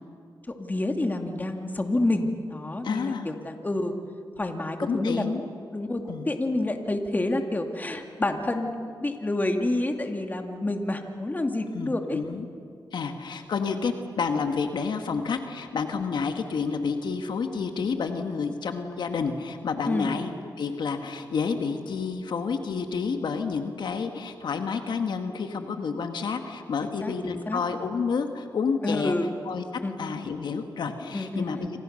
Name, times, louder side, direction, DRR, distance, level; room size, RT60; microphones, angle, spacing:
voice 1, 0.6-3.9 4.4-5.2 5.7-12.2 13.7-13.8 19.9-20.1 26.8-27.6 28.8-29.3 29.8-29.9 31.1-31.7, left 2 dB, 20° left, 5 dB, 2.3 m, -28 dB
voice 2, 2.8-3.3 4.8-5.4 6.1-6.3 11.7-12.5 12.9-20.3 20.6-29.2 29.5-29.6 30.0-31.7, left 5 dB, 75° left, 6 dB, 1.7 m, -29 dB
28.0 x 26.0 x 6.6 m, 2.4 s
cardioid pair, 90°, 8 cm